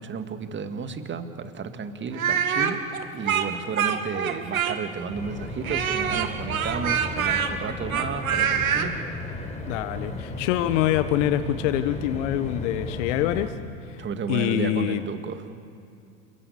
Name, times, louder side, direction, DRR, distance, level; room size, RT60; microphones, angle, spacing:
voice 1, 0.0-2.8 3.1-8.9 14.0-15.4, right 5 dB, 25° right, 8 dB, 2.0 m, -32 dB
Speech, 2.1-5.0 5.6-8.9, right 8 dB, 75° right, 2.0 m, -25 dB
sound 1, 5.1-13.5, left 2 dB, 15° left, 3.8 m, -35 dB
voice 2, 9.7-13.5 13.9-14.0 14.3-15.0, left 12 dB, 60° left, 12 dB, 1.1 m, -25 dB
29.0 x 15.5 x 8.4 m, 2.6 s
figure-of-eight pair, 80°, 41 cm